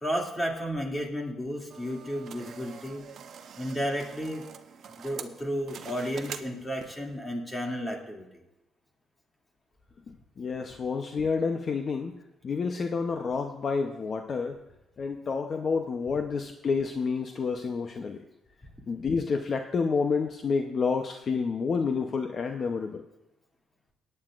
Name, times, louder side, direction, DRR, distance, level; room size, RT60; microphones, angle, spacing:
voice 1, 0.0-3.1 3.6-4.4 4.9-8.4, equal, 15° left, 0 dB, 2.5 m, -33 dB
sound 1, 1.7-7.2, right 7 dB, 60° right, 0.8 m, -45 dB
voice 2, 10.1-12.1 12.4-14.6 15.0-18.2 18.9-23.0, left 5 dB, 45° left, 5 dB, 0.7 m, -29 dB
18.5 x 9.7 x 2.5 m, 0.93 s
cardioid pair, 90°, 0 cm